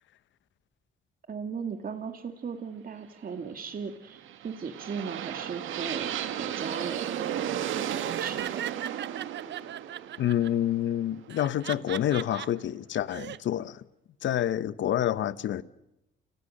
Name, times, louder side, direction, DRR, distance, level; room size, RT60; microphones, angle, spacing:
voice 1, 1.3-8.5, right 6 dB, 45° right, 2.4 m, -37 dB
sound 1, 4.1-12.0, right 10 dB, 85° right, 1.9 m, -35 dB
Laughter, 7.9-10.5 11.3-12.5 12.9-13.4, right 11 dB, 65° right, 0.8 m, -38 dB
voice 2, 10.2-13.8 14.2-15.6, left 11 dB, 70° left, 1.0 m, -28 dB
30.0 x 21.5 x 6.7 m
cardioid pair, 90°, 20 cm